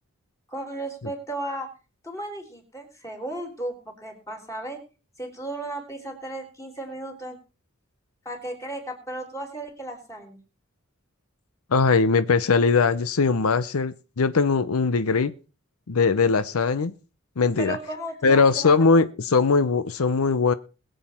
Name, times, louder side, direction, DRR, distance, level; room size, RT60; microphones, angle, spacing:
voice 1, 0.5-1.7 2.0-4.8 5.2-7.4 8.3-10.4 17.6-18.7, right 1 dB, 15° left, 3.6 m, -35 dB
voice 2, 11.7-15.3 15.9-16.9 17.4-17.8 18.2-20.5, left 4 dB, 80° left, 0.7 m, -20 dB
21.0 x 8.0 x 4.3 m
head